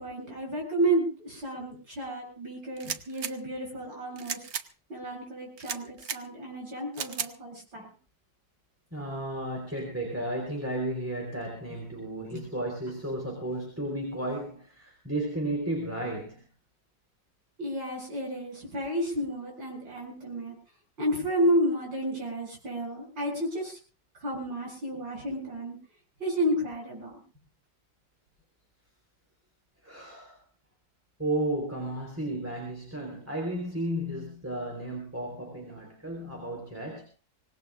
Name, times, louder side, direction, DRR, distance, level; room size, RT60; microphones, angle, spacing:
voice 1, 0.0-4.5 4.9-7.9 12.3-12.4 17.6-20.5 21.0-23.8 24.2-25.8 26.2-27.2, right 1 dB, 85° right, -1 dB, 8.6 m, -31 dB
sound 1, 2.8-3.3 4.2-4.7 5.6-6.2 6.9-7.3, right 7 dB, 50° right, 0.9 m, -35 dB
voice 2, 8.9-16.4 29.8-30.4 31.2-37.1, right 1 dB, 5° right, 0 dB, 4.0 m, -33 dB
25.0 x 19.0 x 2.5 m, 0.35 s
omnidirectional pair, 2.0 m